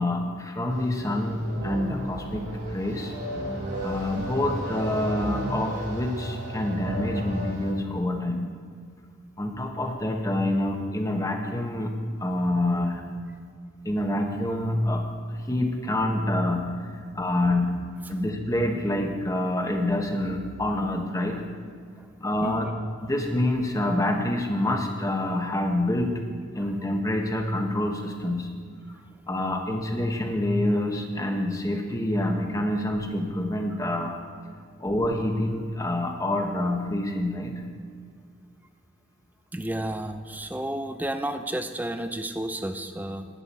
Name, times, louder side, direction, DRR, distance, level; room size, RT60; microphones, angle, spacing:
voice 1, 0.0-3.1 3.8-8.4 9.4-11.9 12.2-13.0 13.8-15.1 15.5-16.6 17.1-17.7 18.1-21.4 22.2-22.7 23.0-26.2 26.5-28.5 29.3-34.2 34.8-37.5, left 1 dB, 15° left, 3 dB, 1.0 m, -27 dB
sound 1, 0.7-7.7, right 1 dB, 65° right, 3.6 m, -34 dB
voice 2, 22.4-22.7 26.6-26.7 39.5-43.3, right 1 dB, 10° right, 8 dB, 0.4 m, -32 dB
13.0 x 10.5 x 4.2 m, 2.1 s
head